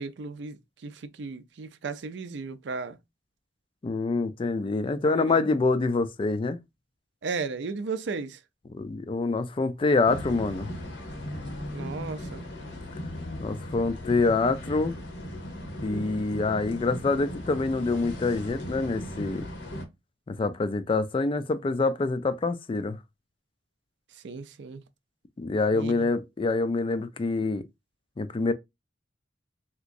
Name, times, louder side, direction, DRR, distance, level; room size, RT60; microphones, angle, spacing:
voice 1, 0.0-3.0 5.0-5.5 7.2-8.4 11.7-12.5 24.2-24.8 25.7-26.1, right 4 dB, 70° right, 0.5 m, -35 dB
voice 2, 3.8-6.6 8.7-10.7 13.4-14.9 15.8-19.4 20.3-23.0 25.4-27.6 28.2-28.5, left 3 dB, 30° left, 0.3 m, -26 dB
sound 1, 10.1-19.8, left 1 dB, 75° left, 0.9 m, -37 dB
3.4 x 2.9 x 2.5 m
head